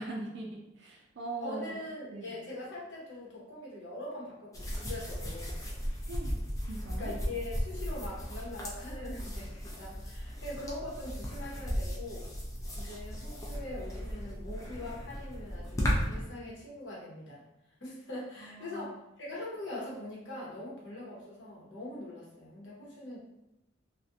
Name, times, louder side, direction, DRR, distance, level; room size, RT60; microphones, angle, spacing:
voice 1, 0.0-1.8 2.1-2.3 6.1-6.4 6.7-7.1 18.4-19.0, right 2 dB, 65° right, -1 dB, 0.4 m, -41 dB
voice 2, 1.4-5.6 7.0-12.3 12.8-17.4 17.8-18.9 19.2-23.2, left 1 dB, 75° left, -6 dB, 0.9 m, -42 dB
sound 1, 4.5-16.3, equal, 15° left, 0.4 m, -36 dB
2.4 x 2.1 x 2.6 m, 0.88 s
head